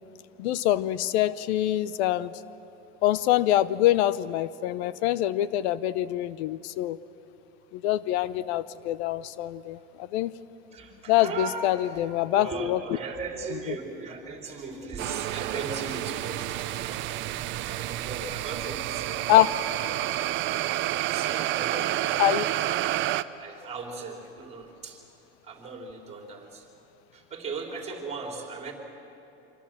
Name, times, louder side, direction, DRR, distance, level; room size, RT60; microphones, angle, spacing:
voice 1, 0.4-2.3 3.0-7.0 7.7-10.3 11.1-12.8 19.3-19.5 22.2-22.4, left 13 dB, 70° left, 16 dB, 0.7 m, -25 dB
voice 2, 10.7-17.4 17.7-20.2 21.0-22.9 23.4-25.1 25.4-26.7 27.1-28.7, right 4 dB, 20° right, 1 dB, 3.7 m, -38 dB
sound 1, 15.0-23.2, right 15 dB, 35° right, 0.6 m, -29 dB
26.0 x 25.0 x 7.4 m, 3.0 s
supercardioid pair, 155°, 34 cm